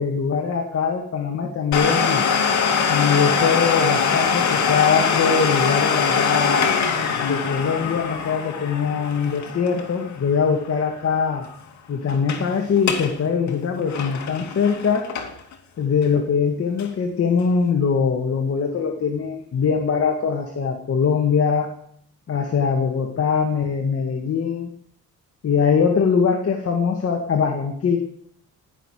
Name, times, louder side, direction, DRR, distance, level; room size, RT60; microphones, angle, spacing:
voice 1, 0.0-2.2 2.9-6.7 7.2-11.5 11.9-15.1 15.8-21.7 22.3-24.7 25.4-28.0, left 6 dB, 50° left, 3 dB, 2.3 m, -22 dB
Domestic sounds home sounds, 1.7-11.2 11.4-11.5 12.1-12.4 12.8-13.1 13.5-15.5 16.0-16.1 16.8-16.9, left 6 dB, 65° left, 2.7 m, -23 dB
19.0 x 6.7 x 9.4 m, 0.67 s
cardioid pair, 90°, 30 cm